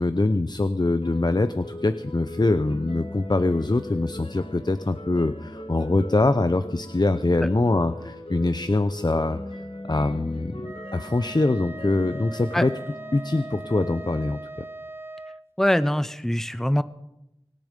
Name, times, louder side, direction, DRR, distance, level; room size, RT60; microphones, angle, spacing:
voice 1, 0.0-9.4 9.8-10.6 10.9-12.7 13.1-14.4, left 2 dB, 45° left, 11 dB, 0.7 m, -23 dB
sound 1, 1.0-14.3, left 1 dB, 70° left, 1.9 m, -40 dB
Wind instrument woodwind instrument, 10.6-15.4, right 2 dB, 25° right, 0.9 m, -40 dB
voice 2, 15.6-16.8, equal, 5° left, 14 dB, 0.7 m, -23 dB
24.0 x 10.5 x 5.2 m, 0.88 s
wide cardioid pair, 45°, 10 cm